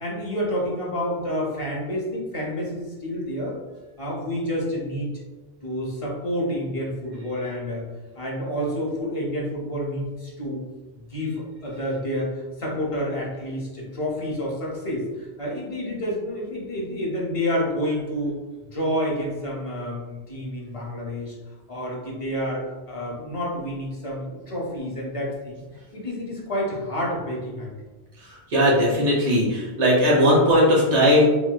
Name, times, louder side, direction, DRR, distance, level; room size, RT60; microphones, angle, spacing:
voice 1, 0.0-3.6 4.0-5.1 5.6-7.8 8.2-10.6 10.9-18.4 18.7-21.3 21.7-25.6 25.9-27.7, equal, 35° left, -2 dB, 0.6 m, -29 dB
voice 2, 28.2-31.3, equal, 85° right, -4 dB, 1.3 m, -18 dB
3.0 x 3.0 x 2.2 m, 1.2 s
omnidirectional pair, 1.1 m